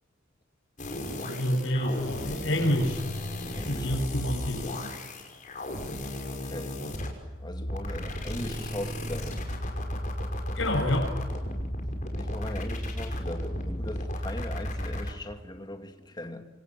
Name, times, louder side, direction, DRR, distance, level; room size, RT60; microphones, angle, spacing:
sound 1, 0.8-15.1, left 1 dB, 40° left, 5.8 m, -34 dB
voice 1, 1.2-3.0 3.7-5.0 10.6-11.2, equal, 75° left, 7.2 m, -28 dB
voice 2, 3.6-3.9 4.2-4.3 6.3-6.8 7.4-9.5 12.1-16.4, left 1 dB, 20° left, 2.6 m, -39 dB
28.5 x 27.0 x 7.6 m
head